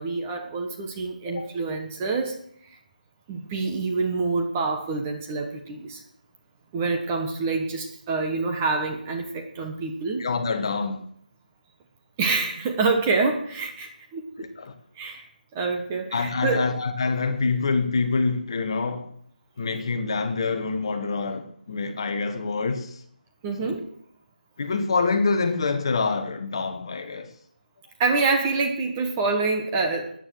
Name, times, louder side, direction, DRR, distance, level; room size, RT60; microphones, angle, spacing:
voice 1, 0.0-2.4 3.3-6.0 6.7-10.2 12.2-14.2 15.0-15.3 15.5-16.6 23.4-23.8 28.0-30.1, right 4 dB, 15° right, 1.2 m, -26 dB
voice 2, 10.2-11.0 14.4-14.7 16.1-19.1 19.6-23.0 23.6-23.7 24.6-27.3, left 4 dB, 35° left, 1.4 m, -26 dB
13.5 x 9.5 x 6.3 m
figure-of-eight pair, 170°, 5 cm